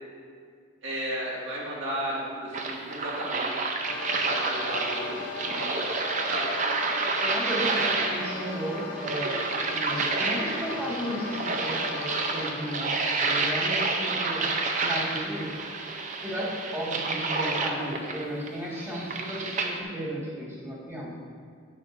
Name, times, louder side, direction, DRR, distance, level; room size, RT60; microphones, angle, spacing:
voice 1, 0.8-3.7 4.3-5.7 6.3-6.5 7.6-7.8, right 1 dB, 55° right, -6 dB, 2.0 m, -34 dB
sound 1, 2.5-19.8, right 3 dB, 35° right, 0.5 m, -29 dB
sound 2, 3.9-12.5, left 3 dB, 60° left, 0.7 m, -38 dB
voice 2, 7.2-9.4 9.7-14.5 14.8-15.5 16.2-21.1, equal, 10° right, -7 dB, 1.8 m, -34 dB
9.3 x 8.4 x 2.6 m, 2.1 s
head